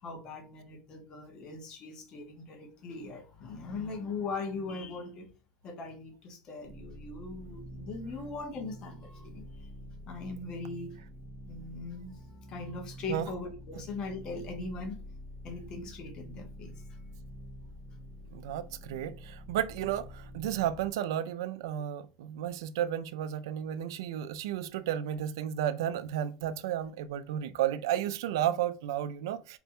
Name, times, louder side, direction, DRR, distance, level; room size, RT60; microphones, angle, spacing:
voice 1, 0.0-5.3 5.6-9.5 10.1-10.9 11.5-12.1 12.5-14.9 15.4-16.7, left 3 dB, 35° left, 0.8 m, -40 dB
sound 1, 6.6-20.9, equal, 10° left, 1.0 m, -47 dB
voice 2, 18.3-29.6, right 11 dB, 85° right, 0.3 m, -33 dB
4.1 x 2.2 x 2.8 m
supercardioid pair, 155°, 2 cm